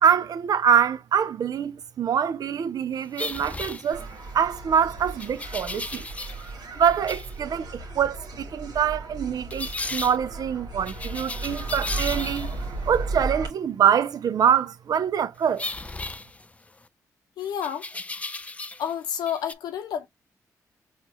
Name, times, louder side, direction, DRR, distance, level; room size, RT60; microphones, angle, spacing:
voice 1, 0.0-4.1 4.3-6.1 6.8-12.5 12.9-15.6, right 8 dB, 65° right, 0.5 m, -24 dB
sound 1, 3.1-4.4 5.2-6.5 6.8-7.3 9.5-10.2 10.9-12.7 15.6-16.9 17.6-18.9 19.2-19.5, left 2 dB, 20° left, 0.4 m, -35 dB
sound 2, 3.9-13.5, right 3 dB, 80° right, 1.3 m, -35 dB
voice 2, 17.4-17.9 18.8-20.1, left 9 dB, 85° left, 0.8 m, -30 dB
4.4 x 2.4 x 3.1 m
cardioid pair, 60°, 7 cm